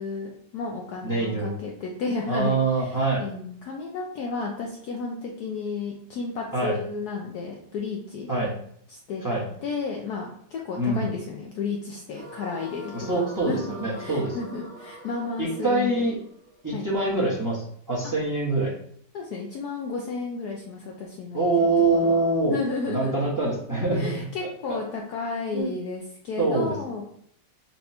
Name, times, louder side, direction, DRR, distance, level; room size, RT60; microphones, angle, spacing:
voice 1, 0.0-8.3 8.9-9.2 9.6-13.6 14.0-16.1 16.7-16.9 19.1-21.4 22.0-22.2 22.5-23.3 23.9-27.0, left 4 dB, 70° left, -1 dB, 1.0 m, -32 dB
voice 2, 1.0-1.5 2.3-3.2 6.5-6.8 8.3-8.5 9.2-9.4 10.8-11.1 12.9-14.4 15.4-16.1 16.6-18.7 21.3-22.6 22.9-24.1 24.7-24.8 25.5-25.7 26.4-26.7, right 2 dB, 15° right, -6 dB, 0.6 m, -24 dB
sound 1, 12.1-17.3, right 1 dB, 60° right, 0.5 m, -44 dB
4.1 x 2.3 x 4.1 m, 0.66 s
omnidirectional pair, 2.1 m